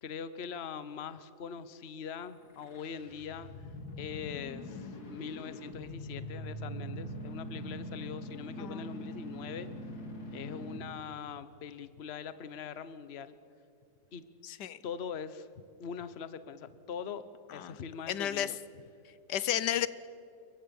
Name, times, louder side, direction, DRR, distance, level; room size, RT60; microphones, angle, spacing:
voice 1, 0.0-3.5 4.0-9.7 10.3-13.3 14.1-14.2 14.8-18.6, left 7 dB, 45° left, 13 dB, 1.1 m, -42 dB
sound 1, 2.4-11.0, equal, 65° left, 3.0 m, -43 dB
voice 2, 8.6-9.2 14.4-14.8 17.5-17.8 18.1-18.5 19.3-19.9, left 11 dB, 85° left, 16 dB, 1.4 m, -33 dB
29.0 x 23.0 x 7.1 m, 2.5 s
omnidirectional pair, 1.8 m